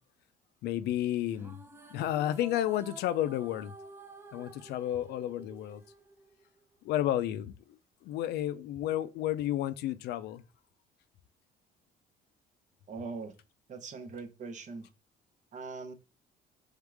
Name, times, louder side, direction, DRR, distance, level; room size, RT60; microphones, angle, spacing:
voice 1, 0.6-1.6 1.9-3.7 4.3-5.8 6.8-7.5 8.0-10.4, left 12 dB, 75° left, 0.4 m, -31 dB
sound 1, 1.3-6.8, right 3 dB, 15° right, 0.5 m, -51 dB
voice 2, 12.9-13.3 13.7-14.9 15.5-15.9, right 4 dB, 45° right, 0.9 m, -41 dB
3.6 x 3.6 x 3.3 m
cardioid pair, 110°, 17 cm